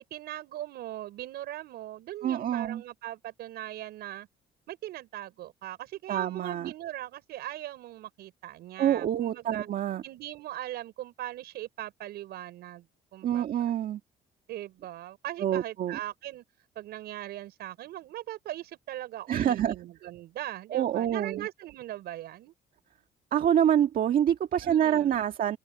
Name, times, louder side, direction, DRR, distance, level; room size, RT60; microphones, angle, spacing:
voice 1, 0.1-4.3 4.7-9.7 10.0-12.9 13.1-13.7 14.5-16.4 16.7-22.5 24.6-25.3, right 14 dB, 75° right, 5.9 m, -40 dB
voice 2, 2.2-2.8 6.1-6.7 8.8-10.0 13.2-14.0 15.4-16.0 19.3-19.7 20.7-21.5 23.3-25.6, right 10 dB, 55° right, 1.8 m, -26 dB
open air
cardioid pair, 110°, 17 cm